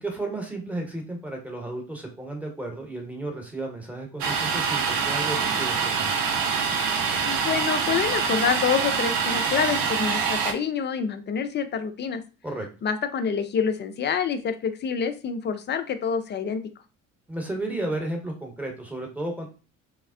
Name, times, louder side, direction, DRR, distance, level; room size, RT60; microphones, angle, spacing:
voice 1, 0.0-6.1 12.4-12.7 17.3-19.5, right 2 dB, 5° right, 2 dB, 1.0 m, -33 dB
Domestic sounds home sounds, 4.2-10.5, right 6 dB, 60° right, 0.6 m, -25 dB
voice 2, 7.2-12.2 12.8-16.6, left 7 dB, 30° left, 9 dB, 0.4 m, -27 dB
3.4 x 2.0 x 2.4 m, 0.34 s
hypercardioid pair, 55°, 38 cm